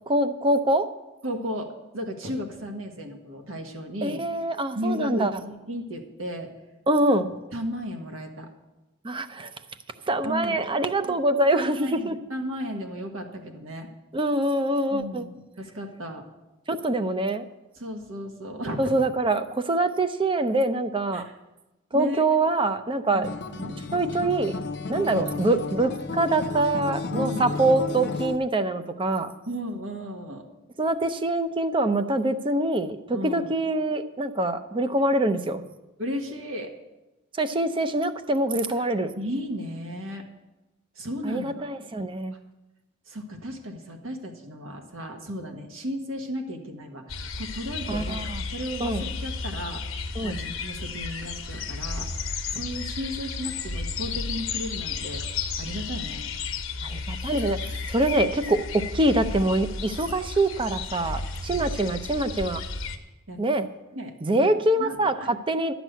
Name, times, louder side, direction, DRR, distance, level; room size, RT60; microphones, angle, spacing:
voice 1, 0.1-0.9 4.0-5.3 6.9-7.3 9.0-9.5 10.1-12.2 14.1-15.2 16.7-17.4 18.8-21.3 21.9-23.3 23.9-24.5 24.9-29.3 30.8-35.6 37.4-39.1 41.2-42.3 47.9-48.4 48.8-49.1 50.2-50.4 56.8-57.6 57.9-58.6 58.9-62.6 63.4-63.7 64.2-65.8, right 2 dB, 25° right, 10 dB, 0.6 m, -24 dB
voice 2, 1.2-4.2 4.7-6.5 7.2-8.5 10.2-10.6 11.1-11.2 11.5-13.9 14.9-16.2 17.7-19.0 21.1-21.2 21.9-22.2 23.1-23.8 24.9-25.5 27.1-27.7 29.5-30.5 33.1-33.5 36.0-36.7 38.8-38.9 39.2-40.3 40.9-41.5 43.1-48.2 48.5-49.8 50.2-52.1 52.5-55.2 55.6-56.3 61.5-61.7 63.3-63.4 63.9-64.2 64.4-65.3, equal, 80° right, 3 dB, 1.6 m, -35 dB
Acoustic guitar, 23.2-28.4, left 4 dB, 55° left, 0.7 m, -32 dB
sound 1, 47.1-63.0, left 4 dB, 75° left, 1.1 m, -33 dB
11.5 x 6.0 x 9.1 m, 1.0 s
head